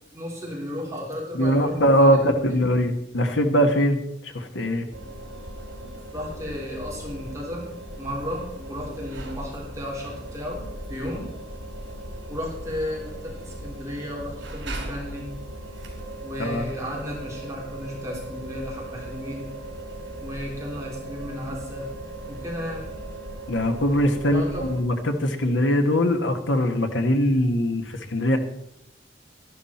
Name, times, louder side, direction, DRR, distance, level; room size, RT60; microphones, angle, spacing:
voice 1, 0.1-2.6 6.1-7.7 8.0-10.6 10.9-11.3 12.3-15.3 16.2-19.5 20.2-21.9 22.3-22.9 24.3-24.7, left 1 dB, 15° right, -3 dB, 3.2 m, -34 dB
voice 2, 1.3-4.9 16.4-16.6 23.5-28.4, equal, 80° left, 6 dB, 1.4 m, -22 dB
sound 1, 4.9-24.8, right 1 dB, 75° right, 3.4 m, -38 dB
12.0 x 11.5 x 4.3 m, 0.80 s
head